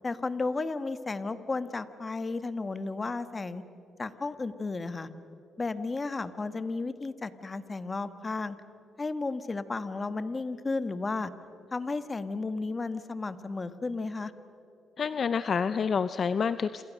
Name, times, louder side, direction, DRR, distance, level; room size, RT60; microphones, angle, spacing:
voice 1, 0.0-3.6 4.0-5.1 5.6-8.6 9.0-11.3 11.7-14.3, left 3 dB, 30° left, 12 dB, 1.4 m, -33 dB
voice 2, 15.0-16.8, left 6 dB, 50° left, 13 dB, 0.6 m, -28 dB
28.0 x 27.5 x 6.5 m, 2.8 s
cardioid pair, 90°, 0 cm